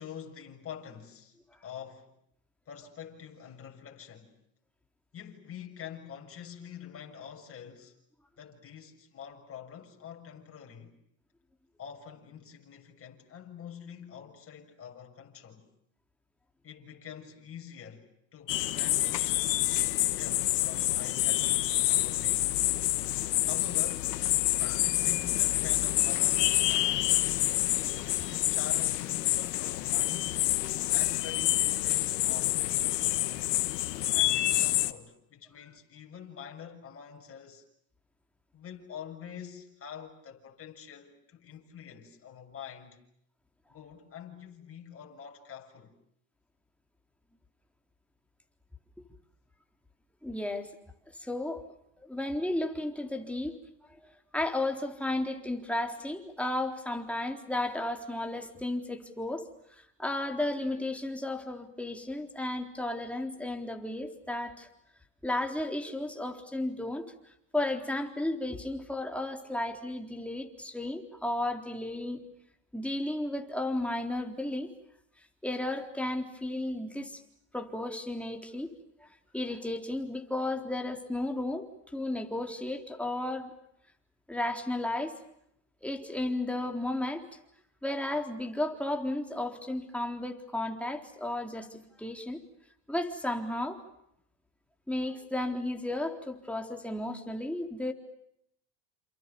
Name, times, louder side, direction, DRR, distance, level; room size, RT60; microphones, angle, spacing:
voice 1, 0.0-1.4 1.6-2.1 2.7-4.4 5.1-7.9 8.4-10.9 11.8-15.7 16.6-19.2 20.1-22.6 23.4-24.3 24.6-27.9 28.2-30.4 30.9-33.3 34.1-37.6 38.5-43.0 43.7-45.9, left 8 dB, 30° left, 6.7 m, -46 dB
sound 1, 18.5-34.9, left 16 dB, 90° left, 1.7 m, -27 dB
voice 2, 50.2-50.7 51.2-51.6 52.0-53.6 54.0-59.4 59.8-64.7 65.2-67.0 67.5-72.2 72.7-74.7 75.4-77.2 77.5-78.7 79.0-79.1 79.3-81.6 81.9-83.5 84.3-85.2 85.8-87.2 87.8-92.4 92.9-93.8 94.9-97.9, left 1 dB, 5° left, 3.9 m, -33 dB
29.0 x 28.0 x 6.9 m
supercardioid pair, 120°, 47 cm